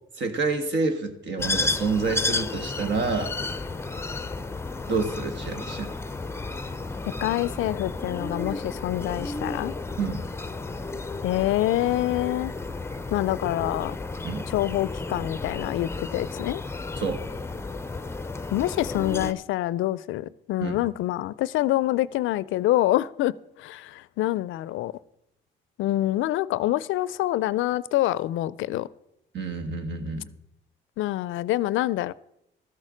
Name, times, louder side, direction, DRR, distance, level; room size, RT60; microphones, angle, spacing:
voice 1, 0.2-3.3 4.9-5.9 10.0-10.2 14.2-14.5 17.0-17.2 20.6-20.8 29.3-30.3, right 4 dB, 65° right, 8 dB, 1.6 m, -28 dB
sound 1, 1.4-19.3, left 3 dB, 10° left, 0.6 m, -32 dB
voice 2, 7.2-9.7 11.2-12.5 13.1-14.0 14.5-16.6 18.5-24.9 25.8-28.9 31.0-32.1, left 15 dB, 80° left, 20 dB, 0.4 m, -26 dB
13.5 x 6.5 x 6.3 m, 0.82 s
cardioid pair, 90°, 20 cm